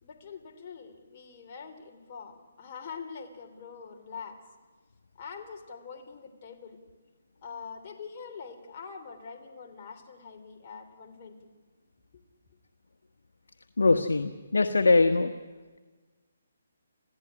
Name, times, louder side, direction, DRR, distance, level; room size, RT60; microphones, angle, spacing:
voice 1, 0.0-4.4 5.1-6.8 7.4-11.5 12.1-12.2, left 5 dB, 40° left, 4 dB, 3.2 m, -44 dB
voice 2, 13.8-15.3, left 3 dB, 85° left, 7 dB, 1.3 m, -22 dB
28.5 x 16.0 x 9.9 m, 1.3 s
hypercardioid pair, 150°, 0 cm